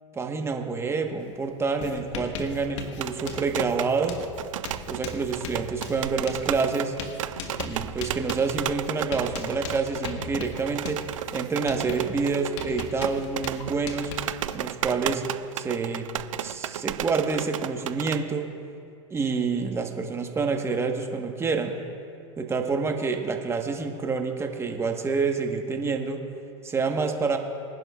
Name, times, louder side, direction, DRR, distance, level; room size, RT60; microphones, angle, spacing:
voice 1, 0.1-4.2 4.9-7.0 7.6-14.1 14.5-15.2 15.5-16.1 16.4-18.4 19.1-21.7 22.4-26.2 26.6-27.4, right 4 dB, 15° right, 4 dB, 1.2 m, -28 dB
Writing, 1.2-1.4 1.6-14.8, left 5 dB, 65° left, 1.5 m, -40 dB
sound 1, 2.9-18.2, right 11 dB, 85° right, 0.5 m, -34 dB
25.0 x 10.5 x 2.4 m, 2.6 s
hypercardioid pair, 115°, 16 cm